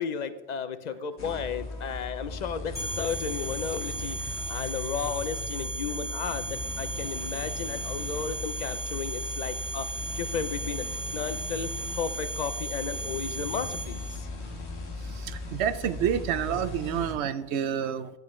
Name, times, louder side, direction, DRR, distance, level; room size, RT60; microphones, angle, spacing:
voice 1, 0.0-9.9 10.2-10.9 11.1-11.7 12.0-14.3, left 6 dB, 50° left, 0.6 m, -34 dB
sound 1, 1.2-17.1, left 2 dB, 80° left, 1.6 m, -38 dB
sound 2, 2.7-14.2, right 2 dB, 10° left, 2.3 m, -36 dB
voice 2, 15.1-18.1, right 9 dB, 80° right, 0.8 m, -29 dB
11.5 x 8.7 x 3.1 m
omnidirectional pair, 1.1 m